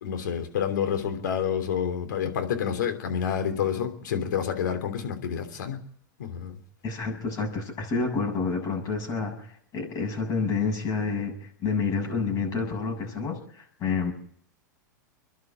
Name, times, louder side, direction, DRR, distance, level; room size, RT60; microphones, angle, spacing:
voice 1, 0.0-5.8 6.2-6.5, left 8 dB, 75° left, 7 dB, 3.1 m, -28 dB
voice 2, 6.8-14.1, left 4 dB, 40° left, 2 dB, 7.3 m, -29 dB
26.5 x 11.5 x 8.7 m, 0.63 s
hypercardioid pair, 105°, 10 cm